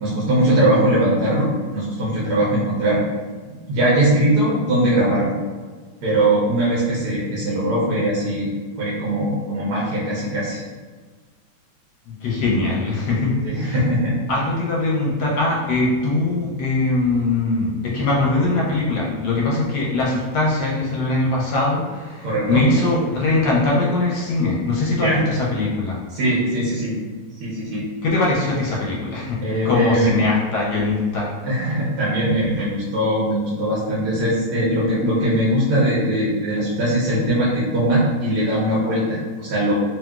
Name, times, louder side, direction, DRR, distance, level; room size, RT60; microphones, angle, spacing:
voice 1, 0.0-3.0 3.7-5.3 6.0-8.5 8.8-10.6 13.4-14.2 14.5-14.6 22.2-22.7 25.0-25.2 26.1-27.0 27.4-27.9 29.4-30.1 31.4-39.7, right 1 dB, 65° right, -6 dB, 1.0 m, -20 dB
voice 2, 12.1-13.7 14.3-26.0 28.0-29.4 29.6-31.3, left 2 dB, 70° left, -4 dB, 1.0 m, -21 dB
2.9 x 2.8 x 2.3 m, 1.4 s
omnidirectional pair, 2.1 m